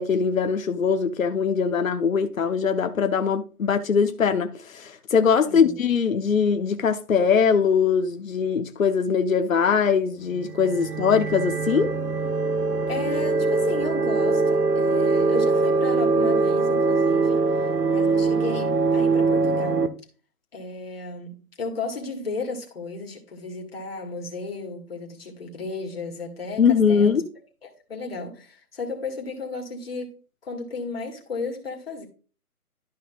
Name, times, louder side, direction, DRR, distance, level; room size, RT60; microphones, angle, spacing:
voice 1, 0.0-11.9 26.6-27.2, left 6 dB, 60° left, 0.8 m, -21 dB
sound 1, 10.3-19.9, right 3 dB, 85° right, 1.0 m, -22 dB
voice 2, 12.9-17.4 17.9-19.9 20.5-27.2 27.6-30.2 30.4-32.1, left 3 dB, 40° left, 1.9 m, -34 dB
12.0 x 5.6 x 2.3 m
figure-of-eight pair, 165°, 46 cm